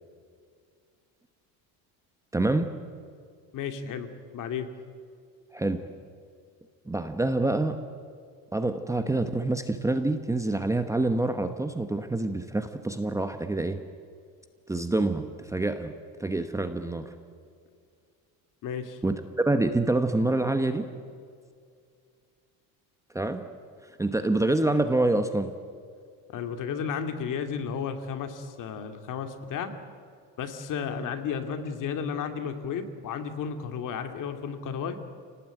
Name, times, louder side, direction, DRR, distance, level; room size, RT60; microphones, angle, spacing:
voice 1, 2.3-2.7 5.5-5.8 6.9-7.7 8.5-13.8 14.7-15.9 16.2-17.1 19.0-20.9 23.1-23.4 24.0-25.5, right 2 dB, 10° right, 8 dB, 1.0 m, -26 dB
voice 2, 3.5-4.7 18.6-19.0 26.3-29.7 30.4-35.0, left 7 dB, 50° left, 7 dB, 2.5 m, -33 dB
29.0 x 18.5 x 9.1 m, 2.2 s
cardioid pair, 150°, 40 cm